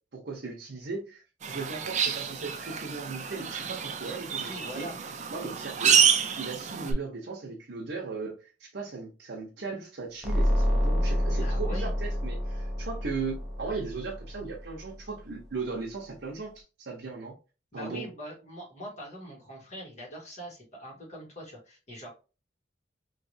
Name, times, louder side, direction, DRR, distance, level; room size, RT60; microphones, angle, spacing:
voice 1, 0.1-4.9 5.3-6.0 6.4-17.3 17.7-18.1, right 4 dB, 70° right, 0.7 m, -37 dB
sound 1, 1.4-6.9, right 7 dB, 40° right, 0.4 m, -28 dB
voice 2, 4.4-5.0 11.4-11.9 17.7-22.1, equal, 40° left, 1.5 m, -42 dB
sound 2, 10.2-14.9, equal, ahead, 0.7 m, -28 dB
3.1 x 2.8 x 2.6 m
head